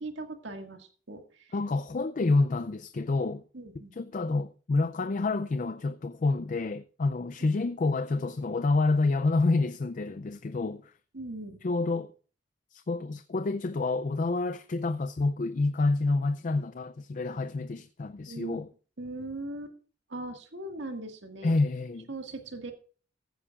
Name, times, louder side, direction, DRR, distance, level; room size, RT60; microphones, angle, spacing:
voice 1, 0.0-1.5 3.5-3.9 7.6-7.7 11.1-11.6 18.3-18.6 19.0-19.7 20.1-21.5 22.1-22.7, right 2 dB, 80° right, 1.9 m, -39 dB
voice 2, 1.5-3.4 3.9-10.9 11.6-12.1 12.7-18.7 21.4-22.1, left 3 dB, 45° left, 0.4 m, -28 dB
15.0 x 9.7 x 2.4 m
head